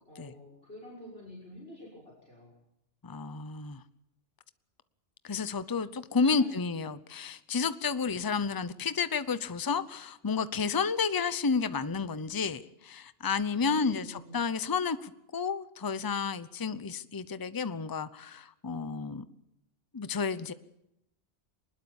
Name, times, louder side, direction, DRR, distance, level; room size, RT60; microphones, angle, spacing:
voice 1, 0.1-2.5 6.2-6.6 13.6-14.4, equal, 60° left, -2 dB, 6.3 m, -48 dB
voice 2, 3.0-3.8 5.2-19.2 19.9-20.5, left 5 dB, 20° left, 14 dB, 0.7 m, -31 dB
23.5 x 20.5 x 7.2 m, 0.85 s
omnidirectional pair, 1.2 m